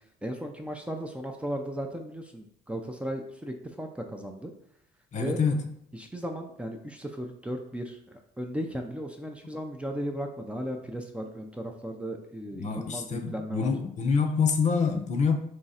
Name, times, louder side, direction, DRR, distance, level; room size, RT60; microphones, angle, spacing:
voice 1, 0.2-4.5 5.2-5.4 5.9-13.7, equal, 5° right, 3 dB, 0.5 m, -36 dB
voice 2, 5.1-5.7 12.5-15.4, left 5 dB, 45° left, 6 dB, 0.7 m, -26 dB
3.6 x 3.1 x 4.2 m, 0.71 s
cardioid pair, 110°, 17 cm